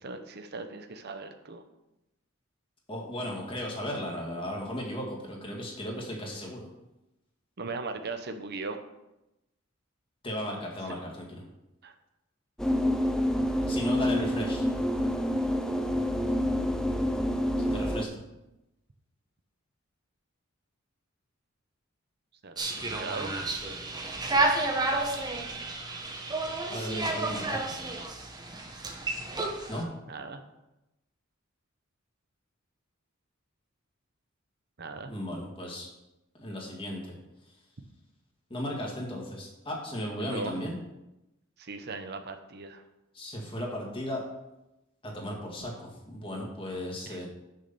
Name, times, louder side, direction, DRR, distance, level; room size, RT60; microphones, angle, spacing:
voice 1, 0.0-1.6 7.6-8.8 11.8-11.9 22.4-23.3 30.1-30.4 34.8-35.1 40.2-40.6 41.6-42.8 47.1-47.2, right 3 dB, 55° right, 7 dB, 0.8 m, -38 dB
voice 2, 2.9-6.7 10.2-11.4 13.7-14.7 17.6-18.2 26.7-27.6 29.7-29.9 35.1-35.9 36.4-37.2 38.5-40.8 43.1-44.2 45.0-47.3, equal, 25° left, -1 dB, 2.0 m, -35 dB
sound 1, 12.6-18.0, equal, 5° left, 0.5 m, -27 dB
sound 2, 22.6-29.8, right 2 dB, 20° right, 1.1 m, -31 dB
6.4 x 6.3 x 6.9 m, 0.93 s
head